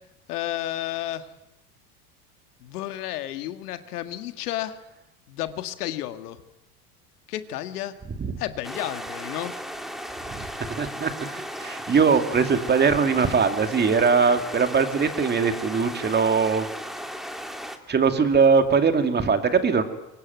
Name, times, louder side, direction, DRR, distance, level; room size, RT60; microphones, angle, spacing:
voice 1, 0.3-1.3 2.6-4.8 5.3-6.4 7.3-7.9 8.4-9.5 11.9-12.0, left 13 dB, 80° left, 10 dB, 1.8 m, -32 dB
sound 1, 8.6-17.8, equal, ahead, 2.1 m, -36 dB
voice 2, 10.8-16.7 17.9-19.8, right 5 dB, 20° right, 8 dB, 2.3 m, -21 dB
24.0 x 19.5 x 9.3 m, 0.92 s
supercardioid pair, 110°, 45 cm